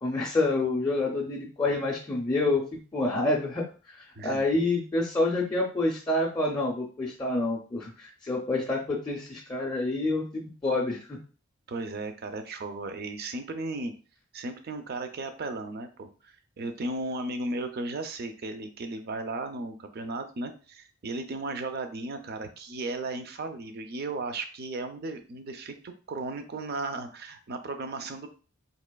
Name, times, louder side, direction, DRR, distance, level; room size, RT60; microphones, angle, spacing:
voice 1, 0.0-11.2, left 2 dB, 20° left, -3 dB, 0.4 m, -28 dB
voice 2, 11.7-13.9 14.3-28.3, right 2 dB, 45° right, 7 dB, 0.4 m, -35 dB
4.1 x 2.8 x 2.2 m, 0.38 s
head